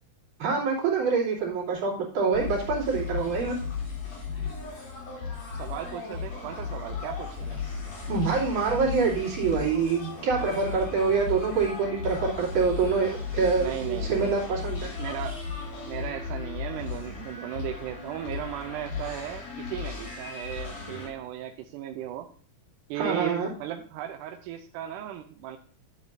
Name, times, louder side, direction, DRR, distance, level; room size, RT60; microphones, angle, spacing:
voice 1, 0.4-3.5 8.1-14.9 23.0-23.5, right 5 dB, 65° right, -5 dB, 4.2 m, -26 dB
sound 1, 2.3-21.1, left 5 dB, 55° left, 4.4 m, -36 dB
voice 2, 5.5-7.6 13.6-14.3 15.0-15.4 15.9-22.3 22.9-25.6, right 11 dB, 85° right, 5 dB, 2.1 m, -36 dB
12.0 x 7.9 x 2.7 m, 0.43 s
omnidirectional pair, 3.7 m